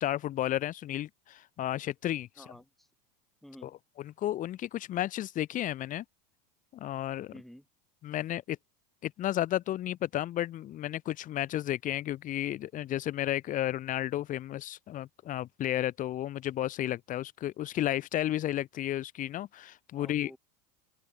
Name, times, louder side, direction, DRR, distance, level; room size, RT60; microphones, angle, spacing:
voice 1, 0.0-2.3 3.6-3.7 4.0-6.0 6.7-7.3 8.0-8.6 9.0-20.3, left 13 dB, 40° left, 2.0 m, -32 dB
voice 2, 2.4-2.9 3.4-3.7 7.3-7.6 19.9-20.4, equal, ahead, 6.6 m, -51 dB
open air
supercardioid pair, 110°, 20 cm